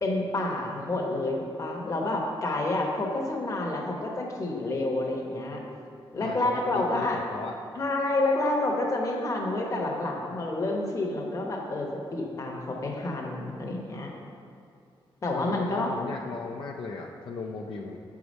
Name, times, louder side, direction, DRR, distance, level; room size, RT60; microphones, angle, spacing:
voice 1, 0.0-5.6 6.1-7.2 7.8-14.1 15.2-15.9, left 2 dB, 35° left, 0 dB, 1.0 m, -29 dB
voice 2, 6.2-7.6 15.3-18.0, left 4 dB, 65° left, -1 dB, 0.5 m, -36 dB
7.0 x 4.8 x 5.3 m, 2.5 s
wide cardioid pair, 150°, 9 cm